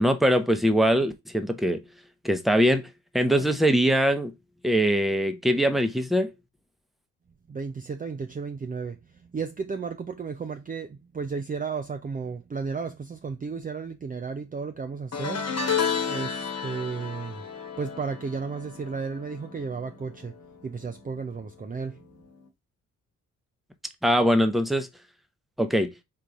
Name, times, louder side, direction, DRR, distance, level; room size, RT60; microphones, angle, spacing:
voice 1, 0.0-1.8 2.2-2.9 3.1-4.3 4.6-6.3 24.0-24.9 25.6-25.9, equal, ahead, 0.9 m, -22 dB
voice 2, 7.5-15.5 16.1-17.5 17.8-20.3 20.6-22.0, right 5 dB, 25° right, 0.5 m, -33 dB
sound 1, 15.1-20.5 20.8-21.2 22.4-22.5, left 6 dB, 45° left, 1.3 m, -32 dB
3.8 x 2.8 x 4.8 m
supercardioid pair, 50°, 35 cm